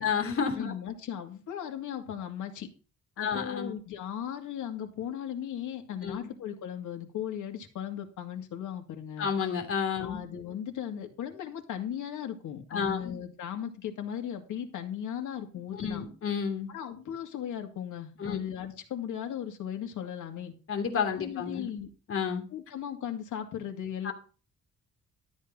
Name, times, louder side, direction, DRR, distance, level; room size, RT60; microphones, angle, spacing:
voice 1, 0.0-0.8 3.2-3.7 6.0-6.2 9.2-10.2 12.7-13.1 15.8-16.7 18.2-18.4 20.7-21.7 22.1-22.4 24.0-24.1, left 6 dB, 45° left, 3 dB, 2.8 m, -30 dB
voice 2, 0.5-2.7 3.2-9.3 10.0-16.1 16.7-20.5 21.2-21.9 22.5-24.1, left 9 dB, 85° left, 4 dB, 2.5 m, -37 dB
13.0 x 8.4 x 4.0 m, 0.35 s
cardioid pair, 165°, 30 cm